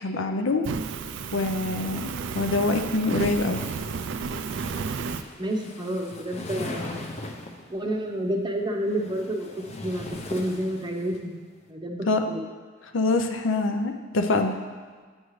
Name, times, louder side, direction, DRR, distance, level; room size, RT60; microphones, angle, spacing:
voice 1, 0.0-0.7 1.3-3.6 12.1-12.2 12.9-14.6, left 3 dB, 70° left, 5 dB, 0.6 m, -25 dB
Fire, 0.6-5.2, right 5 dB, 65° right, 0.4 m, -32 dB
sound 1, 3.0-7.7 8.7-11.2, left 2 dB, 35° left, 0.6 m, -39 dB
voice 2, 5.4-7.0 7.7-9.5 9.8-11.4 11.7-12.4, right 1 dB, 25° right, 1 dB, 0.7 m, -29 dB
8.9 x 6.3 x 3.1 m, 1.5 s
head